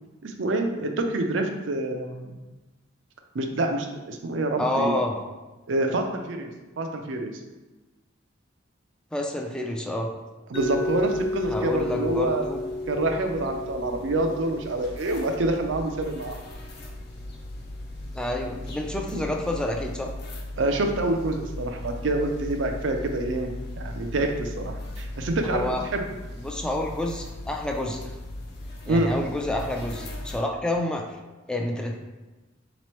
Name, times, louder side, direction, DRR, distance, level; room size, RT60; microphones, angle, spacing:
voice 1, 0.2-2.4 3.3-5.0 5.7-6.5 6.8-7.3 10.5-12.5 12.9-16.4 19.1-19.2 20.6-26.0 28.9-29.1, right 2 dB, 70° right, 4 dB, 0.5 m, -27 dB
voice 2, 4.6-5.2 9.1-10.1 11.5-12.6 18.1-20.1 25.4-25.8 26.4-28.1 28.9-31.1 31.5-32.0, left 1 dB, 5° left, 1 dB, 0.4 m, -28 dB
Mallet percussion, 10.5-16.4, left 2 dB, 30° left, 0.8 m, -33 dB
sound 1, 10.6-30.4, left 1 dB, 60° left, 0.7 m, -38 dB
4.1 x 3.0 x 3.0 m, 1.2 s
head